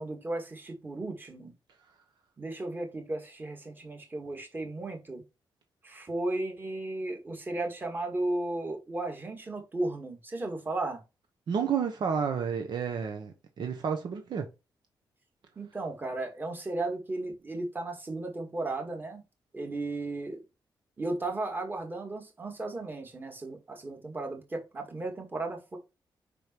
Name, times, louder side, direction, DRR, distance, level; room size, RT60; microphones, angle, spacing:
voice 1, 0.0-1.5 2.4-5.2 5.8-11.0 15.6-19.2 19.5-20.4 21.0-25.8, right 2 dB, 25° right, 2.1 m, -35 dB
voice 2, 11.5-14.5, right 7 dB, 65° right, 1.1 m, -30 dB
5.4 x 5.1 x 4.6 m
wide cardioid pair, 125°, 8 cm